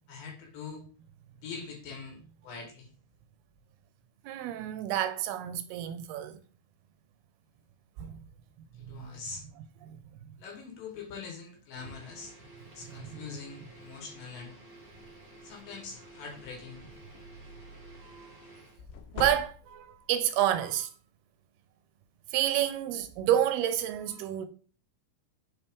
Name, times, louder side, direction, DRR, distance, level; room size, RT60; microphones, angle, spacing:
voice 1, 0.1-0.9 1.4-2.9 8.9-9.4 10.4-12.3 12.7-14.6 15.4-16.8, left 5 dB, 70° left, 2.5 m, -43 dB
voice 2, 4.2-6.4 8.0-8.2 9.8-10.0 12.9-13.3 18.0-18.3 19.1-20.9 22.3-24.5, right 11 dB, 80° right, 2.5 m, -29 dB
sound 1, 11.7-18.8, right 2 dB, 45° right, 1.1 m, -52 dB
sound 2, 14.8-15.1 15.6-15.7 16.0-17.1 18.8-20.0, left 6 dB, 90° left, 2.8 m, -42 dB
7.6 x 4.2 x 3.5 m
omnidirectional pair, 4.6 m